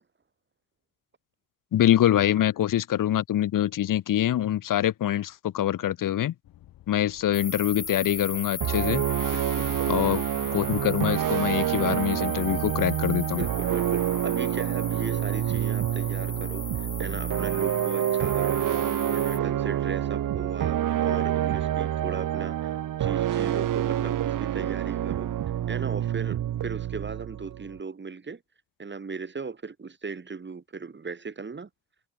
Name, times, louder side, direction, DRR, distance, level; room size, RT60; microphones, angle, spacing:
voice 1, 1.7-6.3 6.9-9.0 9.9-10.2 10.5-13.5, left 12 dB, 70° left, 1.2 m, -24 dB
sound 1, 6.4-13.4, left 14 dB, 85° left, 4.5 m, -52 dB
sound 2, 7.3-19.4, left 4 dB, 25° left, 1.9 m, -38 dB
sound 3, 8.6-27.8, right 11 dB, 65° right, 1.3 m, -27 dB
voice 2, 9.3-9.8 13.4-18.7 19.1-22.7 23.0-25.3 25.7-28.4 28.8-31.7, right 4 dB, 35° right, 1.9 m, -37 dB
supercardioid pair, 55°, 34 cm